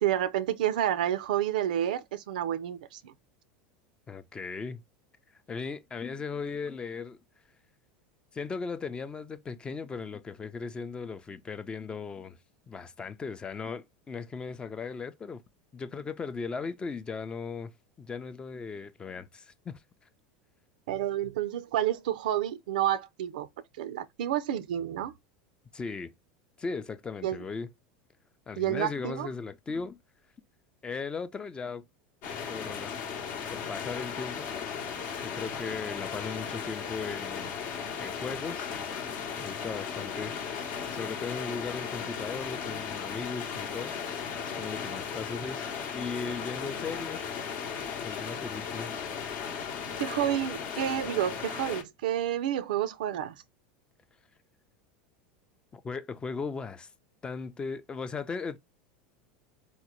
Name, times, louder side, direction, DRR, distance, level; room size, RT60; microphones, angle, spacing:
voice 1, 0.0-3.1 20.9-23.5 23.8-25.1 27.2-27.4 28.6-29.3 50.0-53.4, right 11 dB, 80° right, 0.4 m, -29 dB
voice 2, 4.1-4.8 5.5-7.2 8.3-12.4 12.7-15.4 15.7-17.7 18.0-19.8 25.7-26.1 26.6-27.7 28.5-30.0 30.8-31.8 32.5-32.9 33.5-34.5 35.2-37.6 38.0-38.7 39.4-40.4 40.9-43.9 44.5-45.7 45.9-47.2 47.8-48.9 55.7-56.9 57.2-58.6, left 5 dB, 20° left, 0.4 m, -37 dB
sound 1, 32.2-51.8, left 7 dB, 55° left, 0.8 m, -36 dB
3.6 x 2.0 x 2.9 m
hypercardioid pair, 100°, 4 cm